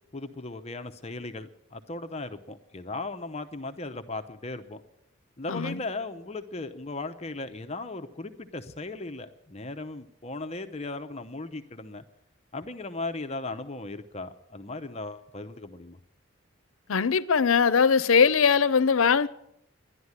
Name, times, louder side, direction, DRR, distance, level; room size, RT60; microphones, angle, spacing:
voice 1, 0.1-4.8 5.4-12.0 12.5-16.0, left 2 dB, 30° left, 0.7 m, -37 dB
voice 2, 16.9-19.3, left 6 dB, 85° left, 0.6 m, -21 dB
11.5 x 11.5 x 9.6 m
head